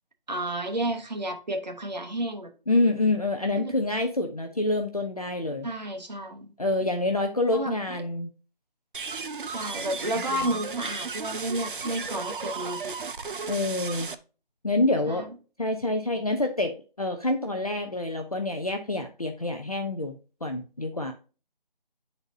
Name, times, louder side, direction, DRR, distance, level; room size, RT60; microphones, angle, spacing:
voice 1, 0.3-2.5 3.6-3.7 5.6-6.5 7.5-7.8 9.4-12.9 15.1-15.3, right 1 dB, 45° right, 1.0 m, -31 dB
voice 2, 2.7-5.7 6.6-8.3 13.5-14.1 14.6-15.2 15.6-20.2 20.4-21.1, left 2 dB, 40° left, 0.5 m, -27 dB
sound 1, 8.9-14.2, right 4 dB, 65° right, 0.6 m, -35 dB
9.4 x 4.0 x 2.6 m
figure-of-eight pair, 175°, 29 cm